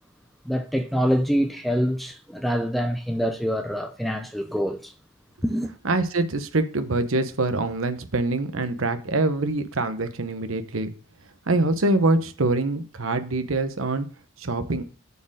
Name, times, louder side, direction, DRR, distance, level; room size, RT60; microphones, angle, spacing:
voice 1, 0.4-4.9 5.4-5.7, equal, ahead, 0.5 m, -25 dB
voice 2, 5.8-10.9 11.5-14.1 14.4-14.8, right 2 dB, 70° right, 0.9 m, -24 dB
6.8 x 4.6 x 6.3 m
head